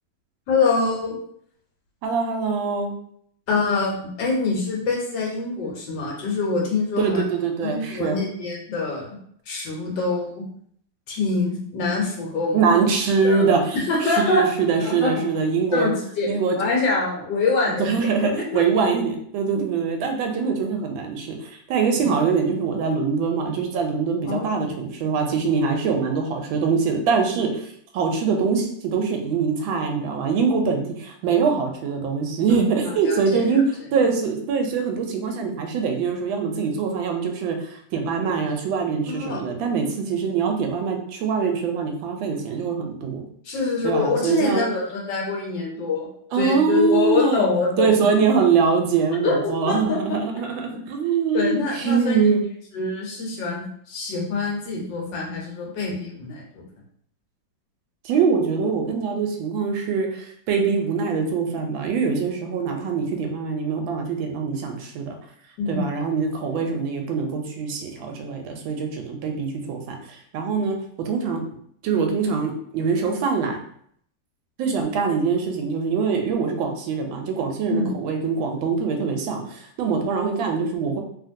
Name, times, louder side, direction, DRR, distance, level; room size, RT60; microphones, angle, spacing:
voice 1, 0.5-1.2 3.5-7.2 7.6-9.2 9.5-10.4 11.1-12.7 13.2-13.4 13.9-14.4 14.8-15.1 15.7-18.6 22.0-22.1 24.3-24.7 32.5-33.5 39.1-39.4 43.4-46.1 46.3-47.9 49.2-50.2 50.7-50.8 51.3-52.2 52.7-56.7 65.6-65.9 77.7-77.9, left 3 dB, 75° left, -2 dB, 1.4 m, -25 dB
voice 2, 2.0-2.9 7.0-8.2 12.5-15.9 16.3-16.6 17.8-27.6 27.9-33.6 33.9-43.2 43.8-44.7 46.3-47.5 47.8-52.4 58.0-65.1 65.7-69.9 70.3-70.8 71.0-71.4 71.8-73.6 74.6-81.0, right 5 dB, 90° right, 3 dB, 1.3 m, -23 dB
2.8 x 2.8 x 2.6 m, 0.66 s
omnidirectional pair, 2.1 m